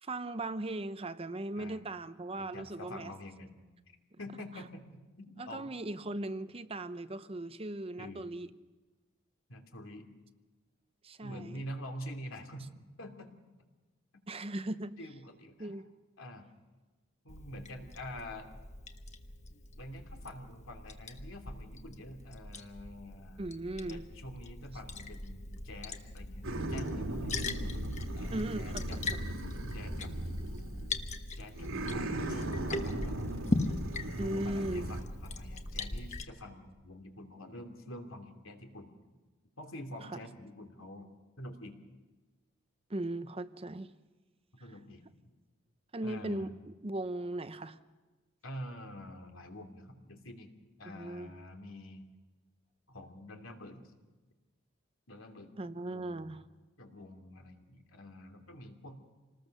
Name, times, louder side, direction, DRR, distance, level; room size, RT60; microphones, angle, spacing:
voice 1, 0.0-3.1 5.4-8.5 11.0-11.6 14.3-15.0 15.6-15.9 23.4-24.0 28.3-29.0 34.2-34.9 40.0-40.2 42.9-43.9 44.6-44.7 45.9-47.8 50.9-51.3 55.6-56.4, right 1 dB, 30° right, 12 dB, 0.7 m, -38 dB
voice 2, 2.4-3.6 4.2-5.7 8.0-8.3 9.5-10.1 11.2-12.7 13.0-13.3 15.0-15.8 16.2-16.5 17.2-18.5 19.8-23.4 23.9-27.3 28.1-29.0 29.7-30.1 31.3-33.3 34.1-38.9 39.6-41.1 41.4-41.8 44.6-45.0 46.0-46.5 48.4-50.5 50.8-52.0 52.9-53.9 55.1-56.4 56.8-59.0, left 1 dB, 80° left, 4 dB, 2.9 m, -47 dB
Liquid, 17.3-36.2, left 2 dB, 35° left, 1.2 m, -40 dB
sound 1, 26.4-31.1 31.5-35.0, right 1 dB, 90° right, 2.6 m, -38 dB
27.0 x 20.0 x 6.6 m, 1.2 s
head